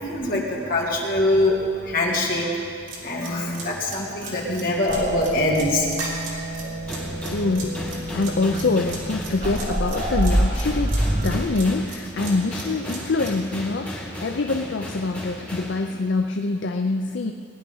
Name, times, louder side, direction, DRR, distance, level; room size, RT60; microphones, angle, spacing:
voice 1, 0.0-2.6 3.0-5.9 6.6-7.0, left 1 dB, 50° left, -4 dB, 2.7 m, -24 dB
sound 1, 2.9-13.4, right 4 dB, 80° right, 3.3 m, -37 dB
sound 2, 4.9-11.4, right 1 dB, 40° right, 1.0 m, -27 dB
sound 3, 6.8-15.8, equal, 10° left, 2.1 m, -35 dB
voice 2, 7.2-17.3, left 3 dB, 65° left, 5 dB, 0.5 m, -25 dB
19.0 x 10.0 x 5.5 m, 2.3 s
head